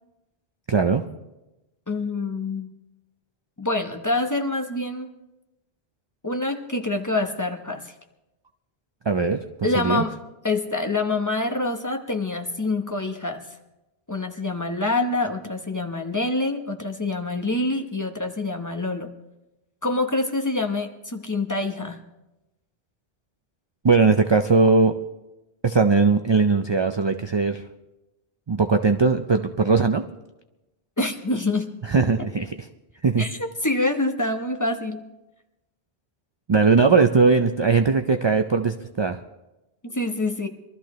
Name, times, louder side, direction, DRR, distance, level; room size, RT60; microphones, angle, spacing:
voice 1, 0.7-1.0 9.1-9.4 9.8-10.0 23.8-25.0 25.6-27.6 28.5-30.0 31.8-32.5 33.0-33.3 36.5-39.2, right 4 dB, 40° right, 7 dB, 0.4 m, -19 dB
voice 2, 1.9-2.7 3.6-5.1 6.2-7.9 9.6-10.1 10.4-13.5 14.1-19.1 19.8-22.0 31.0-31.7 33.2-35.0 39.8-40.5, left 2 dB, 20° left, 4 dB, 0.9 m, -26 dB
23.0 x 13.5 x 3.1 m, 0.98 s
omnidirectional pair, 1.1 m